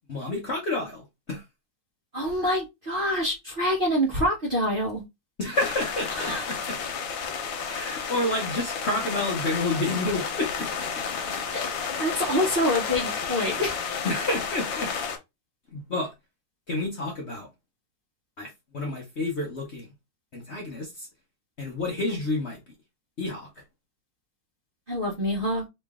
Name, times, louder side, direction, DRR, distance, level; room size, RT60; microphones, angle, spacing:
voice 1, 0.1-1.4 5.4-6.8 7.7-11.3 14.0-14.9 15.7-16.1 16.7-17.5 18.4-19.9 20.3-21.1 21.6-22.6 23.2-23.5, left 2 dB, 45° left, 0.9 m, -30 dB
voice 2, 2.1-5.0 6.1-6.5 11.3-11.6 12.0-13.7 24.9-25.6, equal, 35° right, 1.0 m, -26 dB
sound 1, 5.5-15.2, left 6 dB, 90° left, 1.6 m, -31 dB
3.1 x 3.1 x 3.5 m
omnidirectional pair, 2.0 m